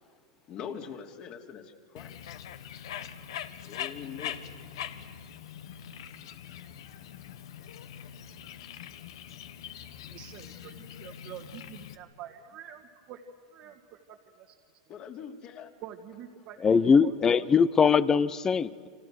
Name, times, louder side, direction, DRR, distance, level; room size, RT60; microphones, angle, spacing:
voice 1, 0.5-2.4 3.6-4.4 14.9-15.7, left 7 dB, 40° left, 3.0 m, -42 dB
Bird, 2.0-12.0, left 9 dB, 75° left, 1.5 m, -42 dB
voice 2, 10.1-13.2 13.5-14.6 15.8-17.5, right 10 dB, 50° right, 2.0 m, -46 dB
voice 3, 16.6-18.9, left 6 dB, 20° left, 0.8 m, -22 dB
30.0 x 25.5 x 6.5 m
hypercardioid pair, 115°, 3 cm